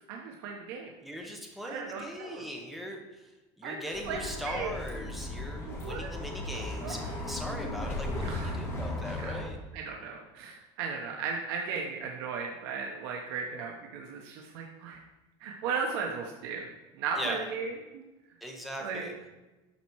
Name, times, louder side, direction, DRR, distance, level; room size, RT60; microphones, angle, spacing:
voice 1, 0.1-0.9 1.6-2.4 3.6-4.7 5.7-6.1 6.8-6.9 8.2-8.6 9.2-9.4 9.7-15.0 15.4-16.7 17.0-18.0 18.8-19.0, right 5 dB, 85° right, 1 dB, 1.1 m, -36 dB
voice 2, 1.0-3.3 3.6-9.6 17.2-17.5 18.4-19.1, equal, ahead, 1 dB, 1.1 m, -40 dB
Bus, 3.9-9.5, left 1 dB, 20° left, 1.8 m, -36 dB
12.0 x 4.3 x 4.6 m, 1.1 s
cardioid pair, 165°, 13 cm